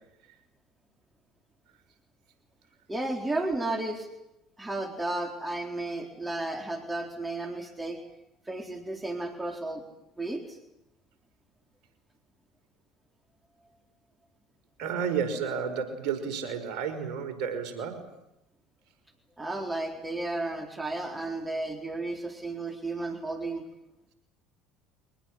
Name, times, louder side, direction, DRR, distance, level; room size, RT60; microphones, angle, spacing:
voice 1, 2.9-4.1 4.6-8.1 8.5-9.8 10.2-10.6 19.4-23.6, right 2 dB, 15° right, 4 dB, 3.9 m, -33 dB
voice 2, 14.8-18.1, right 6 dB, 60° right, 6 dB, 5.4 m, -31 dB
24.5 x 19.0 x 9.7 m, 0.86 s
hypercardioid pair, 70°, 0 cm